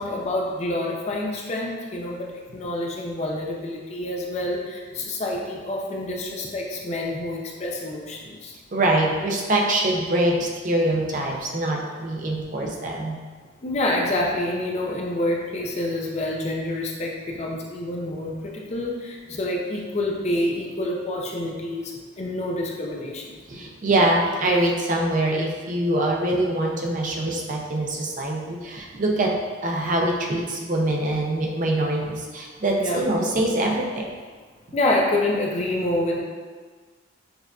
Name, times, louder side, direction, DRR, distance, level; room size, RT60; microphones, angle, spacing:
voice 1, 0.0-8.6 13.6-23.3 32.8-33.0 34.7-36.2, left 1 dB, 35° left, -1 dB, 0.5 m, -27 dB
voice 2, 8.7-13.2 23.5-29.3 29.6-34.1, right 1 dB, 40° right, -1 dB, 0.5 m, -24 dB
6.4 x 2.5 x 2.3 m, 1.5 s
head